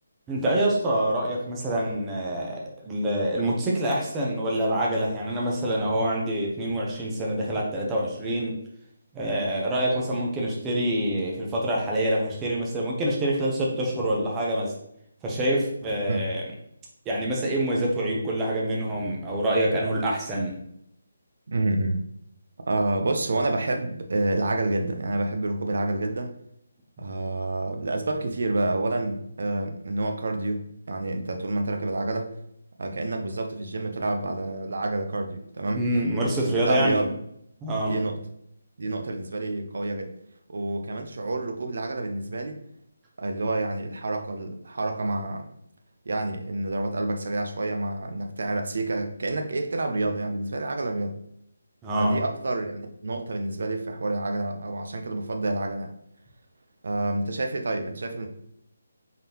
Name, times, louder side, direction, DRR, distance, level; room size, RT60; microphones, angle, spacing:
voice 1, 0.3-8.6 9.1-14.7 15.2-16.4 17.1-20.6 35.8-37.1 37.6-38.0 51.8-52.2, right 1 dB, 10° right, -3 dB, 0.7 m, -26 dB
voice 2, 21.5-22.0 22.7-26.4 27.0-32.4 32.8-36.0 36.5-37.1 37.8-38.2 38.8-40.2 40.5-42.6 43.2-45.5 46.1-51.2 52.0-55.9 56.8-58.3, right 2 dB, 65° right, 5 dB, 0.6 m, -28 dB
3.8 x 3.6 x 2.9 m, 0.74 s
hypercardioid pair, 165°, 0 cm